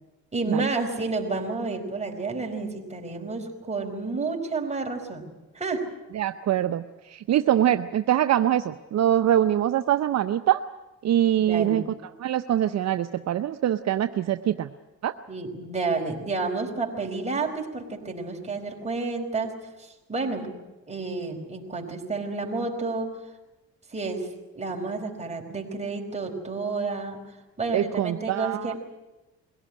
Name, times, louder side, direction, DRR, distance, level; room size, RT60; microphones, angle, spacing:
voice 1, 0.3-5.9 11.4-11.9 15.3-20.6 20.9-23.2 23.9-24.3 24.5-27.2 27.6-28.8, right 3 dB, 20° right, 2 dB, 4.8 m, -30 dB
voice 2, 6.1-10.6 11.0-11.8 12.2-14.7 15.0-15.1 27.7-28.7, right 11 dB, 60° right, 10 dB, 0.8 m, -24 dB
22.5 x 17.0 x 10.0 m, 1.0 s
cardioid pair, 90°, 30 cm